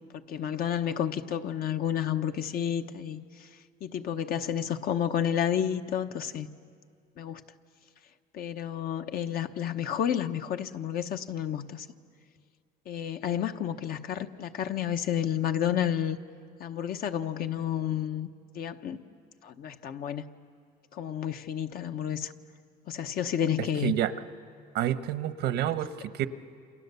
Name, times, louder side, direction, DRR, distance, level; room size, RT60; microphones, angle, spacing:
voice 1, 0.3-3.2 3.8-6.5 7.2-7.4 8.3-11.9 12.9-16.2 16.6-18.3 18.5-19.0 19.4-20.3 20.9-22.3 22.9-23.9, left 9 dB, 60° left, 7 dB, 1.1 m, -30 dB
voice 2, 24.7-26.3, right 12 dB, 80° right, 11 dB, 1.1 m, -28 dB
29.0 x 27.5 x 6.9 m, 2.2 s
cardioid pair, 110°, 17 cm